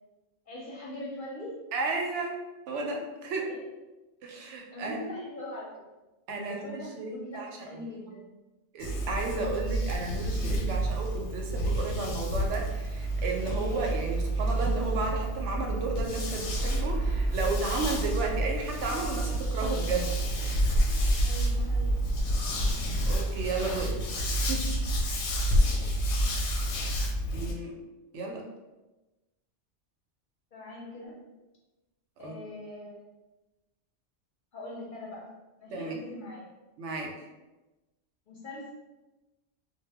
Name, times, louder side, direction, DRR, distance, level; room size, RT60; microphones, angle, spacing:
voice 1, 0.5-1.6 3.4-3.7 4.7-5.7 6.4-8.3 21.2-22.1 30.5-31.3 32.2-33.0 34.5-35.3 35.6-36.5 38.3-38.7, left 1 dB, 55° left, -4 dB, 0.6 m, -41 dB
voice 2, 1.7-2.4 2.7-3.5 4.2-5.0 6.3-6.6 7.0-7.8 8.7-20.1 23.1-23.9 24.5-24.6 27.3-27.7 28.1-28.4 32.2-32.3 35.7-36.0 36.8-37.1, right 3 dB, 80° right, 1 dB, 0.9 m, -33 dB
sound 1, 8.8-27.5, right 1 dB, 90° left, 0.9 m, -29 dB
sound 2, 16.5-21.1 22.9-23.2, right 1 dB, 35° right, 0.5 m, -36 dB
2.1 x 2.0 x 3.3 m, 1.1 s
omnidirectional pair, 1.2 m